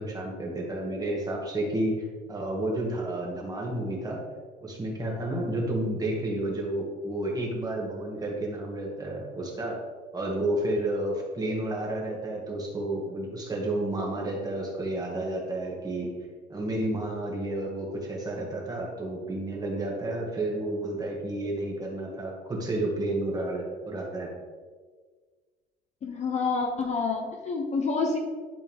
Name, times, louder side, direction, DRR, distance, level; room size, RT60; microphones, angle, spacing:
voice 1, 0.0-2.0 2.3-4.2 4.6-9.8 10.1-16.1 16.5-24.3, right 1 dB, 20° right, -2 dB, 2.0 m, -31 dB
voice 2, 26.0-28.2, left 4 dB, 35° left, 2 dB, 1.0 m, -28 dB
12.0 x 4.7 x 3.6 m, 1.5 s
cardioid pair, 140°, 19 cm